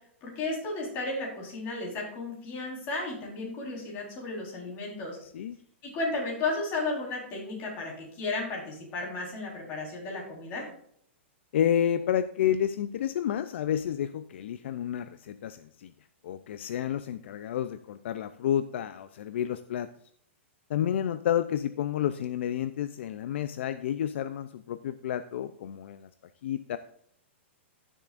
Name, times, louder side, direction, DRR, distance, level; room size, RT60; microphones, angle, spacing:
voice 1, 0.2-5.2 5.8-10.7, left 2 dB, 30° left, -2 dB, 4.1 m, -34 dB
voice 2, 11.5-15.9 16.2-19.9 20.7-26.1 26.4-26.8, left 10 dB, 65° left, 12 dB, 0.5 m, -30 dB
16.5 x 7.3 x 2.5 m, 0.63 s
hypercardioid pair, 155°, 7 cm